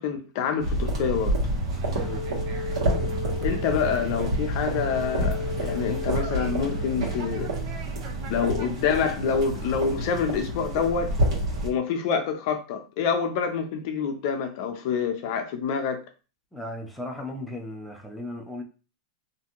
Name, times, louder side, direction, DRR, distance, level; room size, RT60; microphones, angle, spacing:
voice 1, 0.0-1.4 3.4-7.5 8.3-11.1 11.6-16.0, left 6 dB, 55° left, 0.5 m, -27 dB
sound 1, 0.6-11.7, right 1 dB, 75° right, 1.1 m, -28 dB
Conversation, 1.5-9.9, right 6 dB, 50° right, 0.5 m, -45 dB
voice 2, 1.8-2.3 16.5-18.6, left 1 dB, ahead, 0.5 m, -36 dB
sound 2, 2.0-7.6, left 7 dB, 30° right, 1.4 m, -37 dB
2.5 x 2.3 x 2.8 m
hypercardioid pair, 125°, 3 cm